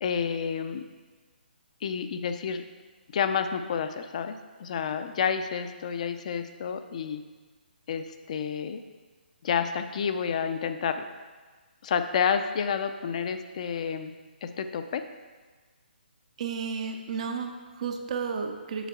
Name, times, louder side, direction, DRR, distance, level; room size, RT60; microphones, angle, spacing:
voice 1, 0.0-0.8 1.8-2.6 3.1-4.3 4.6-7.2 7.9-8.8 9.4-11.0 11.8-14.1 14.4-15.0, left 7 dB, 40° left, 9 dB, 0.4 m, -29 dB
voice 2, 16.4-18.9, right 5 dB, 40° right, 5 dB, 0.5 m, -32 dB
7.3 x 7.0 x 2.4 m, 1.4 s
figure-of-eight pair, 140°, 6 cm